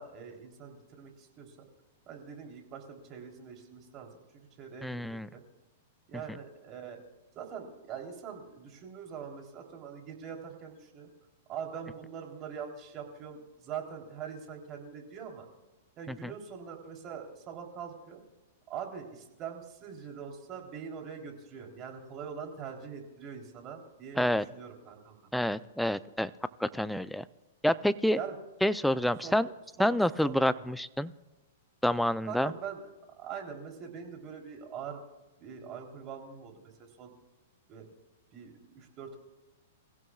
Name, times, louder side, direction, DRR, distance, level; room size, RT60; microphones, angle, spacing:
voice 1, 0.0-1.5 2.1-5.0 5.3-5.4 6.1-7.0 7.3-11.1 11.5-15.4 16.0-18.2 18.7-25.3 28.2-28.4 29.2-29.4 29.8-29.9 30.2-30.5 32.2-32.8 33.2-35.0 35.4-37.1 37.7-37.9 38.3-39.2, right 7 dB, 30° right, 2 dB, 3.5 m, -43 dB
voice 2, 4.8-5.3 16.1-16.3 24.2-24.4 25.3-26.3 26.6-27.2 27.6-28.2 28.6-29.5 29.8-31.1 31.8-32.5, left 1 dB, ahead, 14 dB, 0.5 m, -28 dB
27.5 x 15.5 x 2.4 m, 1.1 s
hypercardioid pair, 145°, 0 cm